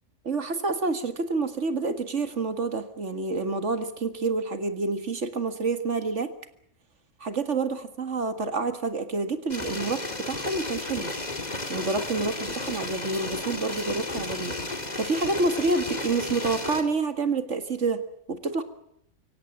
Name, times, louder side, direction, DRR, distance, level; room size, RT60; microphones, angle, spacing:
voice 1, 0.3-6.3 7.2-11.1 11.7-18.0 18.3-18.6, right 3 dB, 60° right, 10 dB, 2.2 m, -28 dB
sound 1, 9.5-16.8, left 2 dB, 30° left, 2.8 m, -33 dB
24.0 x 17.0 x 8.8 m, 0.73 s
omnidirectional pair, 1.4 m